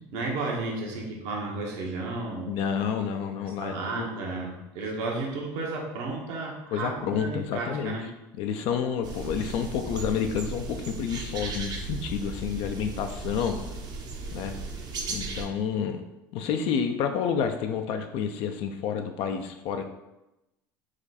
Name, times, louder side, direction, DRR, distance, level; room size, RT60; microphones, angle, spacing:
voice 1, 0.1-2.5 3.4-8.1, right 3 dB, 70° right, -1 dB, 1.1 m, -33 dB
voice 2, 2.4-4.1 6.7-8.0 8.4-13.6 14.3-14.5 15.1-16.0 16.3-19.8, left 7 dB, 60° left, 6 dB, 0.4 m, -29 dB
sound 1, 9.0-15.5, right 3 dB, 40° right, 0.7 m, -36 dB
4.9 x 2.3 x 4.1 m, 0.95 s
supercardioid pair, 90°, 10 cm